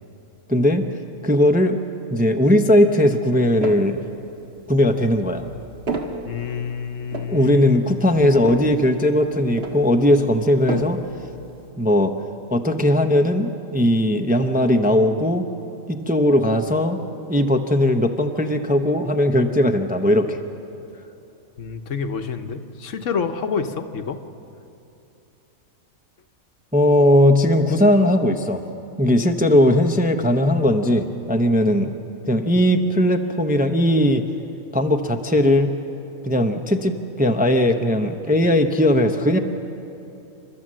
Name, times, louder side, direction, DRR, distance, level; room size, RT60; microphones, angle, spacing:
voice 1, 0.5-0.8 1.2-1.8 2.1-4.0 4.7-5.5 7.3-11.0 11.8-12.1 12.5-15.4 15.9-17.0 17.3-20.4 26.7-28.6 29.0-31.9 32.3-34.2 34.7-35.7 36.2-39.4, left 1 dB, 10° right, 5 dB, 0.6 m, -18 dB
sound 1, 3.4-4.0 4.6-11.7, right 3 dB, 50° right, 1.9 m, -33 dB
voice 2, 6.3-7.9 21.6-24.2 31.7-31.9, left 6 dB, 65° left, 7 dB, 1.2 m, -28 dB
28.5 x 12.5 x 7.5 m, 2.9 s
omnidirectional pair, 1.4 m